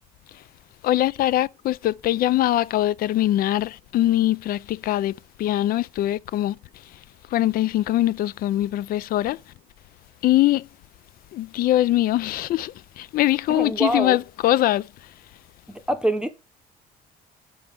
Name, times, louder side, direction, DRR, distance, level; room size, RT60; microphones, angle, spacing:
voice 1, 0.8-6.6 7.3-9.4 10.2-10.7 11.3-14.9, left 14 dB, 60° left, 0.4 m, -22 dB
voice 2, 13.5-14.2 15.7-16.3, right 1 dB, 5° right, 0.8 m, -25 dB
6.8 x 5.5 x 3.4 m
cardioid pair, 110°, 17 cm